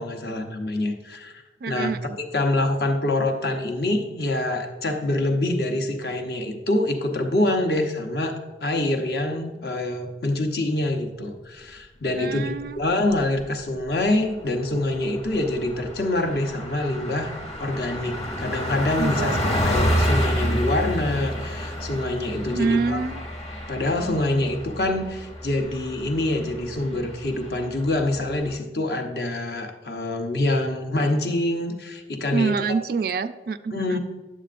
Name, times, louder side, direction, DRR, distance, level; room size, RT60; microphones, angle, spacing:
voice 1, 0.0-1.9 2.3-17.3 17.6-19.4 19.6-23.0 23.7-32.5 33.7-34.0, left 1 dB, 55° left, 4 dB, 0.9 m, -25 dB
voice 2, 1.6-2.2 12.2-12.8 19.0-19.7 22.5-23.3 32.3-34.0, right 4 dB, 55° right, 11 dB, 0.3 m, -27 dB
Car passing by, 12.9-13.5 13.9-14.0 14.3-28.6, equal, 30° left, 1.1 m, -29 dB
10.0 x 7.4 x 2.5 m, 1.2 s
head